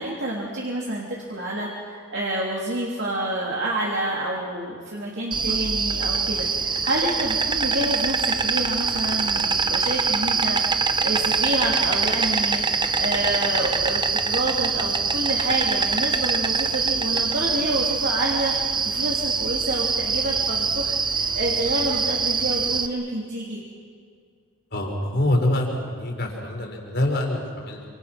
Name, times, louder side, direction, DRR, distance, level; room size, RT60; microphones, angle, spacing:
voice 1, 0.0-10.6 11.0-23.6, right 1 dB, 55° right, -3 dB, 3.2 m, -28 dB
Insect, 5.3-22.9, right 5 dB, 20° right, 0.9 m, -24 dB
voice 2, 24.7-27.9, left 1 dB, 50° left, 1 dB, 4.9 m, -25 dB
28.0 x 26.5 x 6.1 m, 2.1 s
head